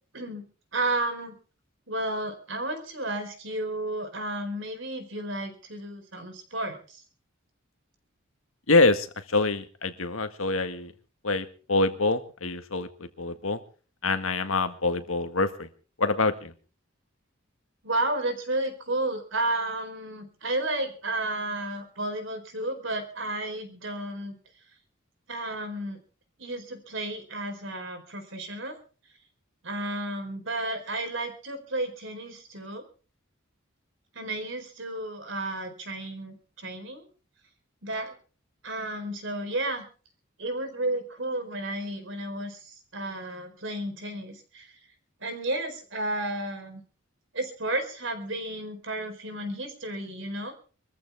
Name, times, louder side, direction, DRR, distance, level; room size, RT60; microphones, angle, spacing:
voice 1, 0.1-0.4 0.7-1.4 1.9-7.0 17.8-24.3 25.3-26.0 26.4-28.8 29.6-32.8 34.1-37.1 37.8-38.1 38.6-39.8 40.4-44.7 45.2-46.8 47.3-50.5, right 2 dB, 65° right, 7 dB, 4.4 m, -32 dB
voice 2, 8.7-10.9 11.2-13.6 14.0-15.7 16.0-16.5, left 3 dB, 80° left, 9 dB, 1.8 m, -25 dB
24.0 x 14.5 x 3.6 m, 0.38 s
head